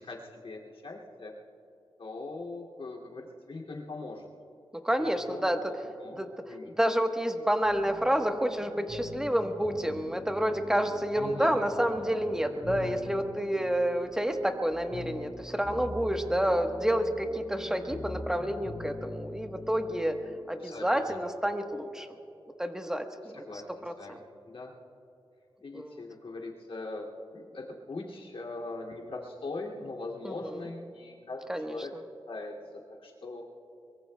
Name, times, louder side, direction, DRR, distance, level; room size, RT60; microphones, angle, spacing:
voice 1, 0.0-1.3 2.0-4.3 5.0-6.7 11.1-11.6 20.6-21.2 23.2-24.7 25.6-27.1 27.3-31.9 32.3-33.4, left 2 dB, 85° left, -3 dB, 2.5 m, -41 dB
voice 2, 4.8-5.6 6.2-20.2 20.5-22.1 22.6-23.4 23.8-24.2 25.7-26.0 30.2-30.6 31.5-31.8, equal, 5° right, 5 dB, 1.1 m, -29 dB
sound 1, 7.6-20.4, left 2 dB, 35° left, 4.5 m, -44 dB
23.5 x 23.0 x 2.2 m, 2.9 s
wide cardioid pair, 100°, 9 cm